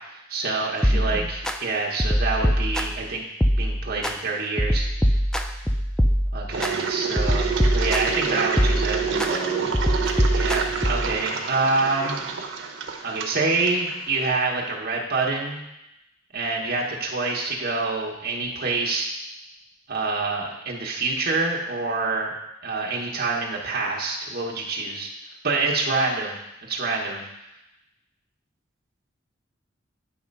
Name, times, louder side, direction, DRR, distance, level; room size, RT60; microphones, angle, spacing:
voice 1, 0.0-3.2 3.6-4.9 6.3-9.0 10.3-12.2 13.0-15.6 16.3-19.1 19.9-22.3 22.6-25.1 25.4-26.4 26.6-27.2, right 3 dB, 50° right, -2 dB, 1.1 m, -26 dB
sound 1, 0.8-1.6 2.0-3.1 3.4-4.1 4.6-6.7 7.2-8.2 8.6-9.3 9.7-11.2, equal, 5° left, 0.3 m, -23 dB
voice 2, 0.9-1.3 8.2-9.8, equal, 40° left, -5 dB, 2.1 m, -35 dB
Engine, 6.5-14.3, right 6 dB, 75° right, 0.8 m, -28 dB
9.2 x 3.3 x 5.3 m, 0.88 s
head